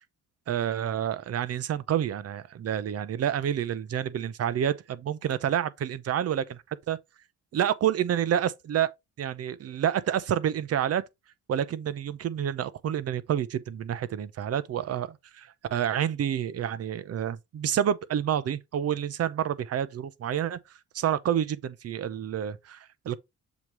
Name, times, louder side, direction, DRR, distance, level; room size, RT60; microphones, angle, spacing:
voice 1, 0.5-6.6 6.9-7.0 7.5-8.9 9.2-11.0 11.5-20.6 20.9-23.2, right 9 dB, 55° right, 0.7 m, -28 dB
7.1 x 3.1 x 4.6 m
cardioid pair, 90°, 30 cm